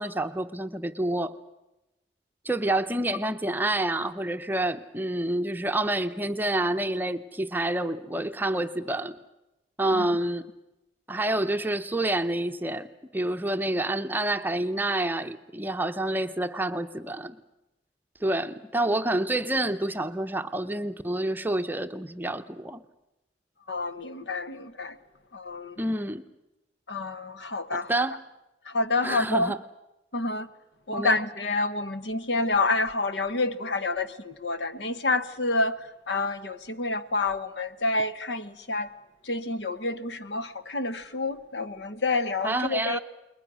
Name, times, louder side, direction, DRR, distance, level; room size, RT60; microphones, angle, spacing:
voice 1, 0.0-1.3 2.4-9.2 9.8-10.5 11.1-17.4 18.2-22.8 25.8-26.2 27.7-28.2 29.0-29.6 30.9-31.2 42.4-43.0, right 1 dB, 10° right, 0.7 m, -28 dB
voice 2, 23.7-25.0 25.3-25.8 26.9-27.9 28.6-29.5 30.1-30.5 30.9-38.9 39.2-43.0, left 3 dB, 75° left, 1.2 m, -28 dB
29.0 x 21.5 x 6.2 m
head